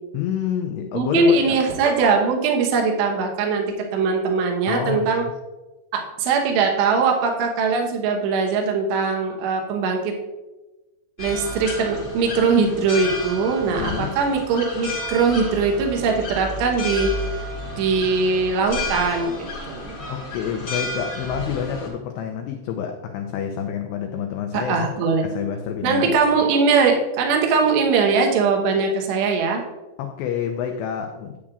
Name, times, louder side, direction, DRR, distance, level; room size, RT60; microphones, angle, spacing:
voice 1, 0.1-1.6 4.7-5.3 13.7-14.2 20.1-24.9 25.2-26.1 30.0-31.4, left 8 dB, 90° left, 2.4 m, -28 dB
voice 2, 0.9-5.3 5.9-10.2 11.2-17.1 17.8-19.9 24.5-25.2 25.8-29.6, right 4 dB, 75° right, 3.0 m, -21 dB
sound 1, 11.2-21.9, left 1 dB, 70° left, 0.9 m, -32 dB
9.7 x 8.5 x 2.4 m
omnidirectional pair, 5.6 m